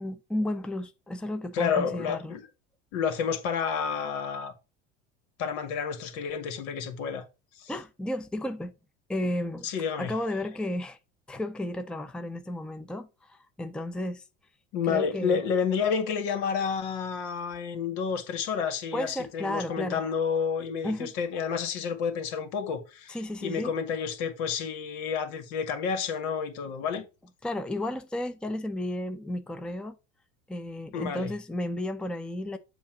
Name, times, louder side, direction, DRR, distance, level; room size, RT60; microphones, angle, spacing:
voice 1, 0.0-2.4 7.7-8.7 9.1-9.7 10.0-11.0 11.3-14.2 14.8-15.4 18.9-20.0 20.8-21.1 23.1-23.7 27.4-30.0 30.5-32.6, left 1 dB, ahead, 0.7 m, -33 dB
voice 2, 1.5-2.5 2.9-4.5 5.4-7.3 7.6-7.7 9.6-10.1 14.7-27.1 30.9-31.3, left 6 dB, 65° left, 2.1 m, -30 dB
7.2 x 2.8 x 5.9 m
hypercardioid pair, 90°, 36 cm